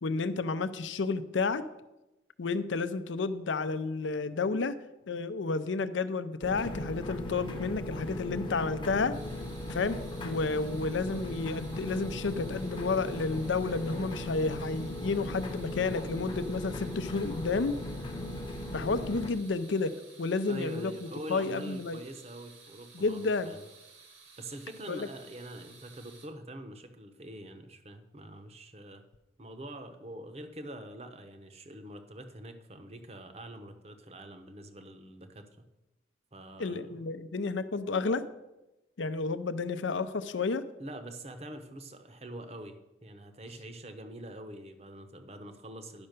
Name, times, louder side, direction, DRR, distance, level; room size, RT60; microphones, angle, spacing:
voice 1, 0.0-1.6 2.4-4.8 5.1-9.1 9.7-10.0 10.2-17.8 18.7-19.9 20.2-22.0 22.9-23.5 24.9-25.1 36.6-38.2 39.0-40.6, left 4 dB, 80° left, 13 dB, 0.6 m, -31 dB
sound 1, 6.4-19.3, left 1 dB, 25° left, 0.8 m, -38 dB
sound 2, 9.1-26.3, right 5 dB, 75° right, 2.1 m, -55 dB
voice 2, 20.5-23.7 24.4-29.0 29.4-35.7 36.3-37.1 40.8-46.1, right 1 dB, 35° right, 7 dB, 0.8 m, -45 dB
10.5 x 5.6 x 6.6 m, 0.98 s
head